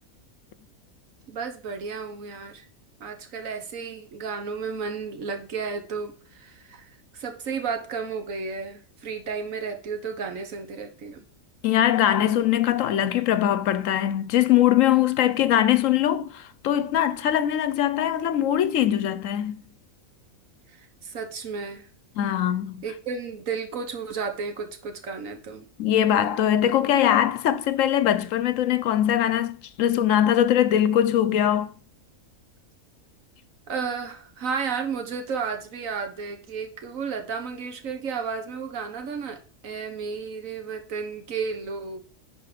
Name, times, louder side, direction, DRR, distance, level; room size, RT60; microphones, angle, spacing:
voice 1, 1.3-2.6 3.0-11.2 20.8-21.9 22.8-25.7 33.7-42.0, right 5 dB, 75° right, 1.6 m, -33 dB
voice 2, 11.6-19.6 22.2-22.8 25.8-31.7, left 11 dB, 75° left, 1.0 m, -22 dB
10.5 x 4.1 x 5.1 m
omnidirectional pair, 1.4 m